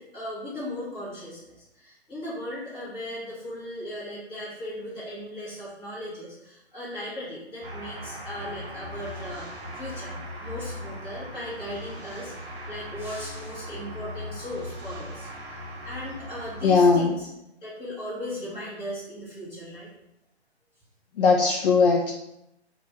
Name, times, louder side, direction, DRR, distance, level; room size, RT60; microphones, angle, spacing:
voice 1, 0.0-12.3 12.7-15.6 15.8-17.3 17.6-19.9, left 1 dB, 15° left, -10 dB, 1.2 m, -37 dB
sound 1, 7.6-17.1, equal, 50° right, 0.9 m, -39 dB
voice 2, 16.6-17.1 21.2-22.1, left 4 dB, 55° left, 0 dB, 0.5 m, -19 dB
2.8 x 2.4 x 3.0 m, 0.85 s
hypercardioid pair, 150°, 33 cm